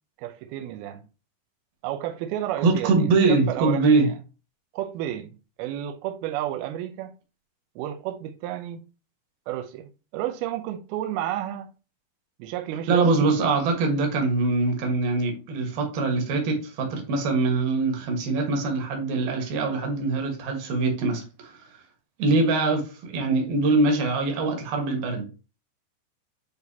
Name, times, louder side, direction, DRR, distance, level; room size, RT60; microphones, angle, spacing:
voice 1, 0.2-1.0 1.8-4.1 4.7-5.3 5.6-7.1 7.8-8.8 9.5-11.7 12.4-13.3, right 12 dB, 90° right, 2.2 m, -31 dB
voice 2, 2.6-4.1 12.9-21.6 22.2-25.3, right 3 dB, 60° right, 3.0 m, -23 dB
8.6 x 4.0 x 2.8 m
omnidirectional pair, 5.2 m